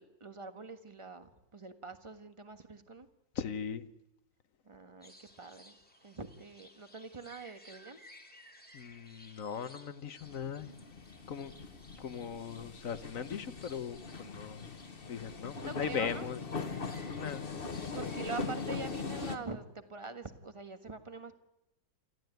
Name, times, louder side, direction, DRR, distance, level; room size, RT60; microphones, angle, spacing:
voice 1, 0.0-3.1 4.6-5.7 6.0-8.0 11.2-11.3 15.6-16.3 17.9-21.3, right 4 dB, 20° right, 9 dB, 1.4 m, -45 dB
voice 2, 3.3-3.9 8.7-10.7 11.3-11.5 12.0-14.7 15.1-16.4 17.1-17.9, left 7 dB, 55° left, 12 dB, 1.2 m, -39 dB
sound 1, 5.0-19.4, left 1 dB, 5° left, 2.2 m, -58 dB
sound 2, 10.2-19.4, left 4 dB, 35° left, 1.3 m, -41 dB
28.0 x 14.5 x 9.3 m, 0.92 s
omnidirectional pair, 1.9 m